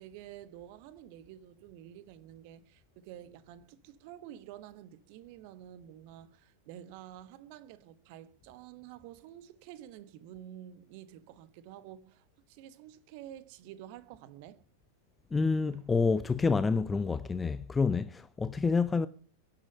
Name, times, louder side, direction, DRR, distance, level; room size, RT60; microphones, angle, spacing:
voice 1, 0.0-14.6 15.7-15.8, right 11 dB, 45° right, 1.4 m, -50 dB
voice 2, 15.3-19.1, left 4 dB, 15° left, 0.7 m, -28 dB
23.0 x 10.0 x 5.5 m
figure-of-eight pair, 90°, 0 cm